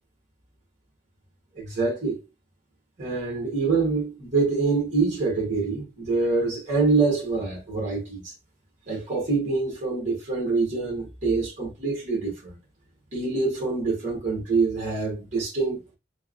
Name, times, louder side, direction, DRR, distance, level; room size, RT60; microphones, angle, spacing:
voice 1, 1.5-2.2 3.0-8.3 8.9-12.5 13.1-15.8, right 4 dB, 40° right, 1.2 m, -25 dB
3.2 x 2.0 x 2.5 m
head